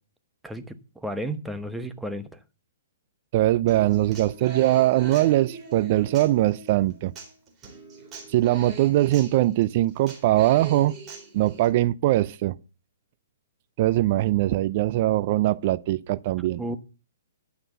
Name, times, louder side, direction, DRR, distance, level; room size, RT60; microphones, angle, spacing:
voice 1, 0.4-2.3 16.6-16.8, right 1 dB, 5° right, 1.0 m, -33 dB
voice 2, 3.3-7.1 8.3-10.9 11.3-12.6 13.8-16.6, right 15 dB, 45° right, 0.4 m, -21 dB
Human voice / Acoustic guitar, 3.7-11.7, right 4 dB, 20° right, 3.9 m, -42 dB
11.5 x 5.9 x 7.0 m
hypercardioid pair, 140°, 0 cm